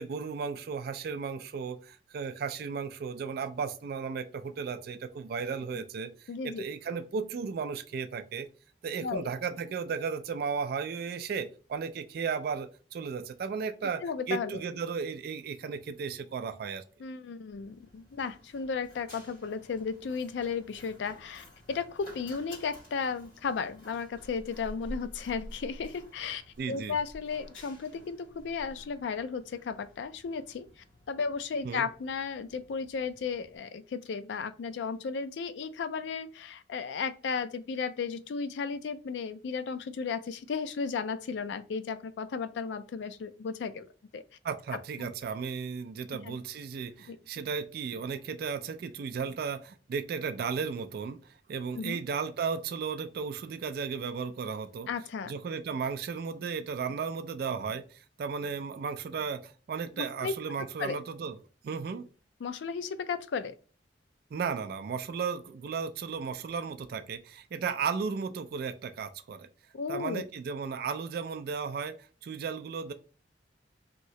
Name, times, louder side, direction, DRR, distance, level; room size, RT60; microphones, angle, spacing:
voice 1, 0.0-8.5 8.8-14.0 14.3-16.8 26.6-27.0 31.6-31.9 44.4-54.9 55.3-61.4 61.6-62.1 64.3-69.5 69.9-72.0 72.2-72.9, right 5 dB, 55° right, 0.3 m, -35 dB
voice 2, 6.3-6.6 9.0-9.3 14.0-14.6 17.0-26.4 26.7-30.7 31.1-43.9 44.1-44.2 45.0-45.1 46.2-46.4 47.1-47.2 51.8-52.0 54.9-55.3 60.0-60.3 60.8-61.0 62.4-63.6 69.7-70.2, left 5 dB, 80° left, 0.4 m, -34 dB
Run, 17.5-33.6, equal, 50° left, 1.7 m, -51 dB
2.9 x 2.7 x 3.1 m
head